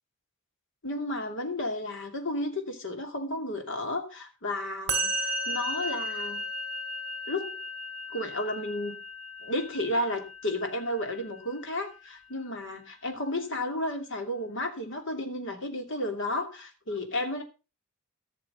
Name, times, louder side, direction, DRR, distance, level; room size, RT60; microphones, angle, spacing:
voice 1, 0.8-6.4 7.3-7.6 8.1-9.0 9.4-17.4, left 1 dB, 60° left, 5 dB, 2.8 m, -32 dB
Musical instrument, 4.9-12.2, right 1 dB, 30° right, 3.2 m, -35 dB
15.0 x 6.6 x 5.4 m, 0.31 s
head